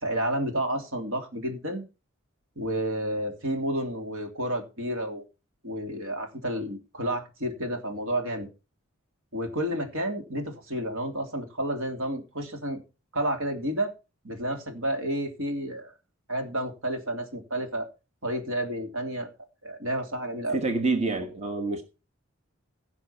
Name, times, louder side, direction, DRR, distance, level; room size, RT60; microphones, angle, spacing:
voice 1, 0.0-1.8 2.6-5.2 5.6-8.5 9.3-12.8 13.1-13.9 14.2-15.9 16.3-17.9 18.2-19.3 19.6-20.6, right 1 dB, 70° right, 3.0 m, -30 dB
voice 2, 20.5-21.8, right 3 dB, 30° right, 1.4 m, -27 dB
17.0 x 5.9 x 5.7 m
head